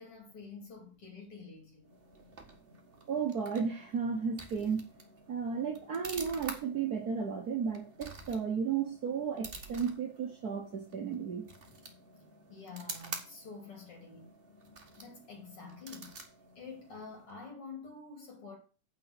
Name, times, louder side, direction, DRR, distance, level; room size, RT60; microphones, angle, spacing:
voice 1, 0.0-2.0 12.5-14.3 14.9-16.2 16.5-18.6, left 4 dB, 50° left, 3.3 m, -48 dB
sound 1, 1.8-17.4, right 3 dB, 30° right, 1.1 m, -49 dB
voice 2, 3.1-4.8 5.3-11.5, right 6 dB, 90° right, 0.8 m, -34 dB
8.9 x 5.6 x 5.9 m
omnidirectional pair, 3.4 m